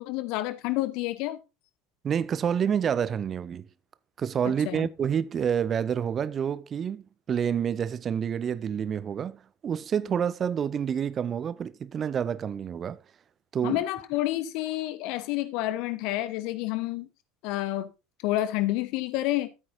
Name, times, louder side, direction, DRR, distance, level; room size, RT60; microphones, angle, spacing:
voice 1, 0.0-1.4 4.6-4.9 13.6-17.1 17.4-17.9 18.2-19.5, left 16 dB, 50° left, 1.1 m, -29 dB
voice 2, 2.0-3.7 4.2-13.0 13.5-13.8, right 8 dB, 30° right, 0.5 m, -28 dB
13.0 x 8.8 x 2.7 m
figure-of-eight pair, 70°, 0 cm